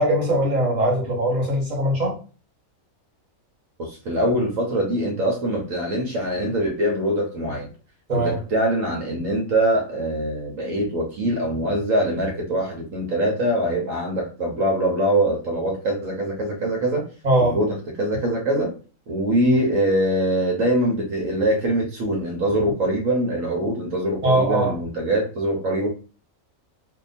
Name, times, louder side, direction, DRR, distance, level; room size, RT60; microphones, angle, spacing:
voice 1, 0.0-2.1 8.1-8.4 17.2-17.6 19.4-19.6 24.2-24.7, right 1 dB, 35° right, -3 dB, 1.4 m, -21 dB
voice 2, 3.8-7.7 8.1-17.0 17.4-18.7 19.1-25.9, right 1 dB, 75° right, 0 dB, 1.2 m, -23 dB
2.8 x 2.2 x 4.1 m, 0.37 s
omnidirectional pair, 1.4 m